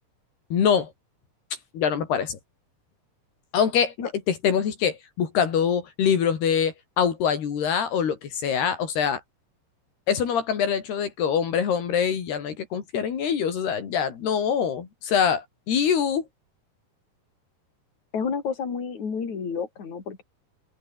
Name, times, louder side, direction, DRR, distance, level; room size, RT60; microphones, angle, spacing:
voice 1, 0.5-0.9 1.7-2.4 3.5-3.9 4.3-9.2 10.1-16.3, left 7 dB, 80° left, 5.3 m, -24 dB
voice 2, 18.1-20.2, left 6 dB, 45° left, 5.7 m, -30 dB
open air
omnidirectional pair, 4.6 m